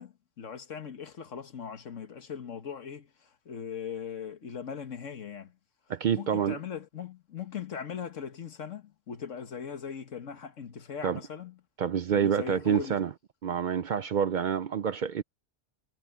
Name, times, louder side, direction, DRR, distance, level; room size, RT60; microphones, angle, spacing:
voice 1, 0.0-5.6 6.2-11.6 12.1-13.0, left 7 dB, 80° left, 1.7 m, -39 dB
voice 2, 5.9-6.6 11.0-11.2 11.8-13.1 13.4-15.2, right 8 dB, 65° right, 0.5 m, -27 dB
omnidirectional pair, 1.3 m